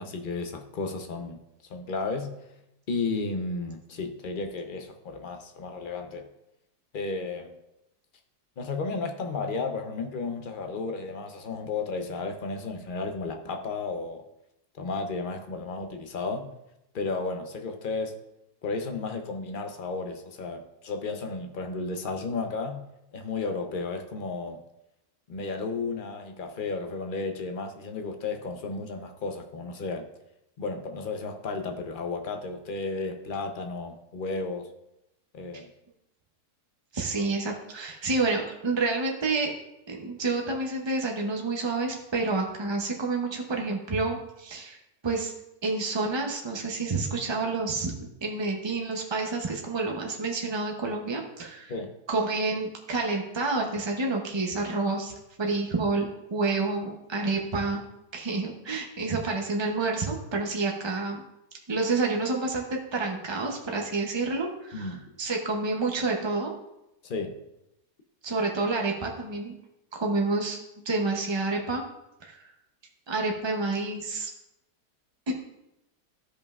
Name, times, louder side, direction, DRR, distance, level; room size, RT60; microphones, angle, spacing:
voice 1, 0.0-1.4 1.7-2.3 2.9-6.3 6.9-7.6 8.6-14.2 14.7-16.5 16.9-18.2 18.6-22.8 23.1-24.6 25.3-30.1 30.6-34.7 35.3-35.7 51.7-51.9 64.7-65.0 67.0-67.4, left 3 dB, 50° left, 5 dB, 0.6 m, -33 dB
voice 2, 36.9-39.5 39.9-44.8 45.0-45.3 45.6-51.7 52.1-57.8 58.1-61.2 61.7-62.6 62.9-66.5 68.2-69.5 69.9-70.6 70.8-71.8 72.2-72.4 73.1-74.3 75.3-75.4, right 3 dB, 45° right, 1 dB, 0.3 m, -29 dB
15.0 x 5.3 x 2.4 m, 0.89 s
omnidirectional pair, 1.7 m